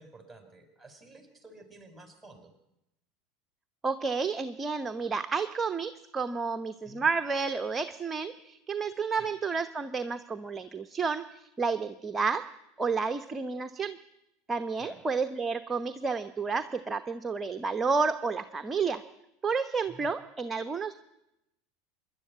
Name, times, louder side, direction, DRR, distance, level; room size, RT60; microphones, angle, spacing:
voice 1, 0.0-2.5 6.8-7.1 9.1-9.3 14.8-15.0 19.9-20.1, right 2 dB, 5° right, 6 dB, 5.2 m, -51 dB
voice 2, 3.8-12.5 12.8-14.0 14.5-19.0 19.4-21.0, right 5 dB, 20° right, 9 dB, 0.9 m, -31 dB
25.5 x 11.0 x 9.6 m, 0.89 s
hypercardioid pair, 80°, 0 cm